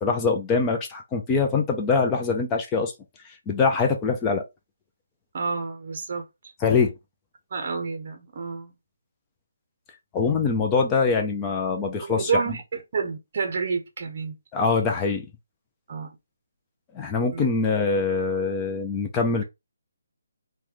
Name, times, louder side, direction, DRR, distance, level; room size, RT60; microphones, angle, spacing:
voice 1, 0.0-2.9 3.5-4.4 6.6-6.9 10.1-12.6 14.5-15.3 16.9-19.4, left 4 dB, 15° left, 0.4 m, -23 dB
voice 2, 5.3-6.2 7.5-8.7 12.0-12.6 12.9-14.4 15.9-16.2 17.3-17.5, right 5 dB, 40° right, 0.6 m, -29 dB
3.0 x 2.2 x 3.7 m
hypercardioid pair, 170°, 0 cm